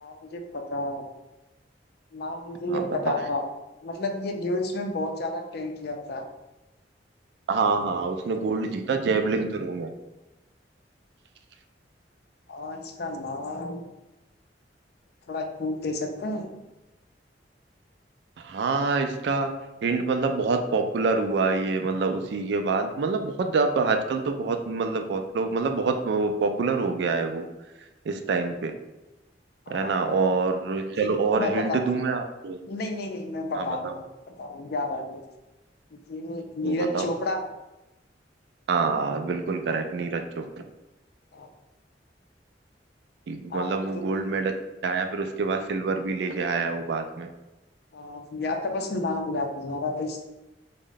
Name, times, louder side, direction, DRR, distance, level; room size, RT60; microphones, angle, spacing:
voice 1, 0.0-1.1 2.1-3.4 3.8-6.3 7.6-8.0 8.4-8.6 12.5-13.8 15.3-16.5 29.7-30.0 31.4-31.8 32.7-34.0 34.4-35.2 35.9-37.4 41.3-41.5 43.5-43.7 43.9-44.0 47.9-50.2, left 2 dB, 60° left, 5 dB, 0.4 m, -31 dB
voice 2, 2.7-3.2 7.5-9.9 18.4-19.5 19.8-27.5 28.1-28.7 29.7-32.6 33.6-33.9 36.6-37.1 38.7-40.4 43.3-44.5 44.8-47.3, right 4 dB, 65° right, 6 dB, 0.3 m, -26 dB
3.6 x 2.1 x 3.8 m, 1.0 s
head